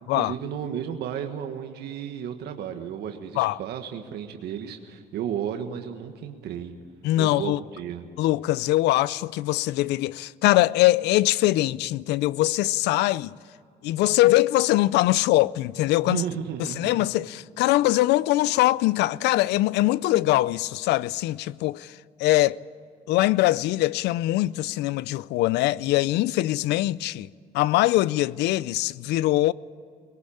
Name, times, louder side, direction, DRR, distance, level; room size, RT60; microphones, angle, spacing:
voice 1, 0.1-6.7 7.2-8.0 16.0-17.1, right 9 dB, 75° right, 1.5 m, -33 dB
voice 2, 7.0-7.6 8.2-13.4 13.8-16.2 16.8-22.6 23.1-27.3 27.5-29.5, left 17 dB, 85° left, 0.5 m, -22 dB
21.0 x 18.0 x 8.6 m
cardioid pair, 110°, 17 cm